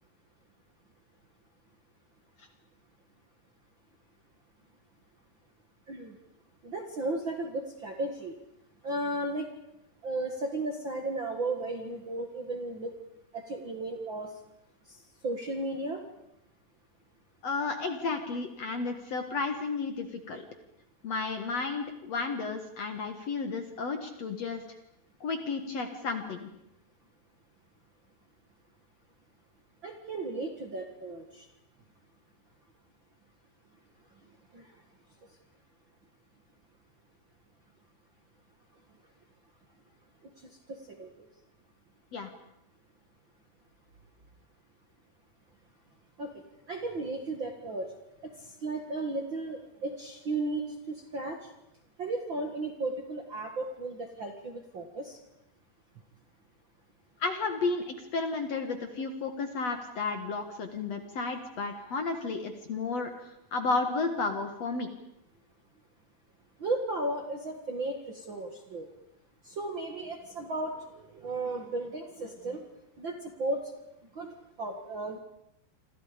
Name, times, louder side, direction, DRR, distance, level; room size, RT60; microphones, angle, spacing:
voice 1, 6.6-8.3 8.8-9.5 10.0-12.9 13.3-14.3 14.9-16.0 29.8-31.5 34.5-34.7 40.2-40.3 40.7-41.3 46.2-46.3 46.7-47.9 48.2-51.5 52.0-55.2 66.6-68.9 69.4-72.6 73.0-73.7 74.1-75.2, right 2 dB, 45° right, 4 dB, 1.8 m, -35 dB
voice 2, 17.4-20.5 21.0-24.6 25.2-26.5 42.1-42.3 57.2-63.1 63.5-64.9, left 4 dB, 55° left, 6 dB, 2.2 m, -32 dB
28.0 x 26.0 x 5.1 m, 0.83 s
omnidirectional pair, 4.5 m